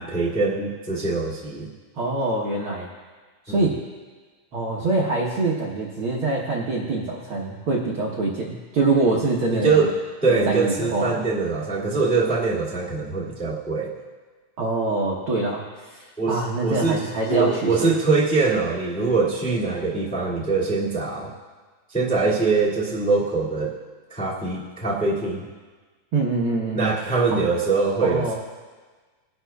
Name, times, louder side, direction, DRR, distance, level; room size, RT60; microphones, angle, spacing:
voice 1, 0.0-1.7 3.5-3.7 9.5-9.9 10.2-13.9 16.2-21.3 21.9-23.7 24.1-25.5 26.7-28.4, right 4 dB, 5° left, -6 dB, 1.3 m, -23 dB
voice 2, 2.0-2.9 3.4-3.8 4.5-9.9 10.3-11.2 14.6-17.9 26.1-26.9 27.3-27.4 28.0-28.4, right 2 dB, 75° right, -2 dB, 1.2 m, -24 dB
20.0 x 11.0 x 2.3 m, 1.4 s
omnidirectional pair, 4.0 m